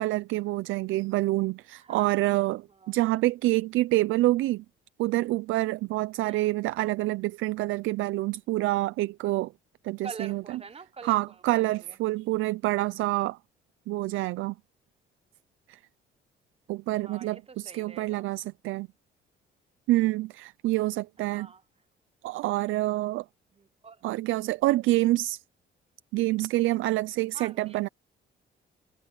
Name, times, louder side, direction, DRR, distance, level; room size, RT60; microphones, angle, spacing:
voice 1, 0.0-4.6 5.0-9.5 9.8-10.4 11.0-13.4 13.9-14.5 15.7-15.8 16.7-18.9 19.9-21.5 22.2-23.2 24.0-25.4 26.1-27.9, right 18 dB, 85° right, 0.5 m, -27 dB
voice 2, 1.8-3.0 6.2-6.5 10.0-12.0 16.9-18.3 21.3-21.6 23.5-24.0 27.3-27.9, right 5 dB, 30° right, 1.2 m, -46 dB
cardioid pair, 90°, 20 cm